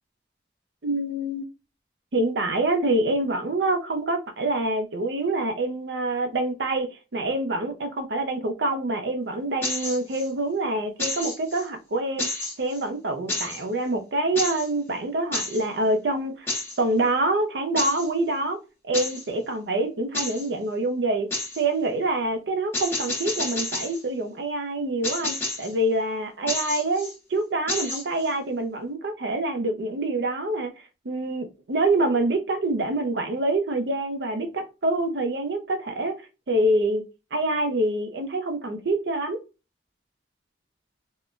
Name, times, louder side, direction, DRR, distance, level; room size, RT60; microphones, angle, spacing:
voice 1, 0.8-1.4 2.1-12.3 12.6-16.5 16.8-18.6 18.8-21.3 21.6-30.7 31.0-36.2 36.5-37.0 37.3-39.4, right 2 dB, 75° right, 0.6 m, -26 dB
sound 1, 9.6-10.3 11.0-11.6 12.2-12.8 13.3-13.6 14.4-14.7 15.3-15.6 16.5-16.8 17.8-18.1 18.9-19.3 20.1-20.5 21.3-21.6 22.7-24.0 25.0-25.7 26.5-27.1 27.7-28.3, left 2 dB, 15° left, 0.9 m, -30 dB
3.6 x 2.2 x 2.4 m
head